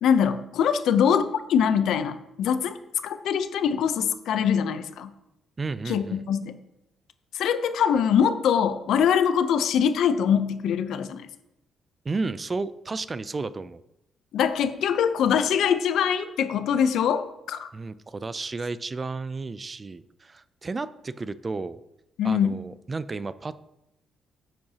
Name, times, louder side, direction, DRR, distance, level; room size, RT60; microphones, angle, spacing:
voice 1, 0.0-2.8 3.0-5.1 5.9-6.6 7.3-11.3 14.3-17.7 22.2-22.6, left 8 dB, 75° left, 11 dB, 0.6 m, -23 dB
voice 2, 5.6-6.2 12.0-13.8 17.7-21.8 22.2-23.7, right 3 dB, 30° right, 16 dB, 0.4 m, -33 dB
9.4 x 7.4 x 2.8 m, 0.88 s
cardioid pair, 90°, 0 cm